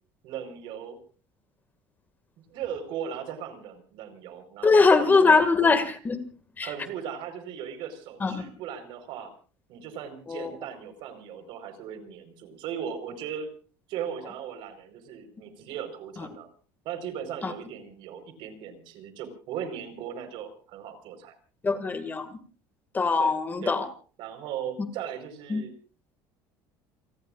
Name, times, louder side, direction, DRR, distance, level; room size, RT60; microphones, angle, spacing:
voice 1, 0.2-1.0 2.5-5.7 6.6-9.3 9.7-13.5 13.9-16.5 16.8-21.4 23.2-23.3 23.6-23.8 24.2-25.7, right 8 dB, 60° right, 8 dB, 4.6 m, -38 dB
voice 2, 4.6-6.2 6.6-6.7 8.2-8.4 10.3-10.5 17.4-17.5 21.6-22.4 22.9-23.9 25.5-25.6, left 4 dB, 20° left, 9 dB, 2.1 m, -22 dB
29.0 x 19.5 x 2.5 m, 0.40 s
cardioid pair, 135°, 9 cm